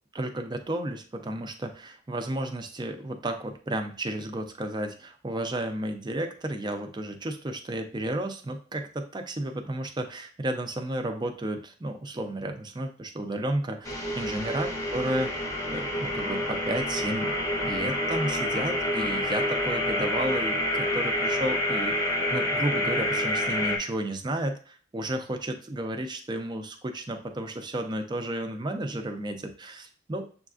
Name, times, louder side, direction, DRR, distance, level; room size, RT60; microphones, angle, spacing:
voice 1, 0.1-17.3 17.6-30.3, right 1 dB, 25° right, 5 dB, 0.5 m, -32 dB
sound 1, 13.8-23.8, left 1 dB, 15° left, 0.7 m, -28 dB
6.8 x 2.4 x 2.4 m, 0.41 s
head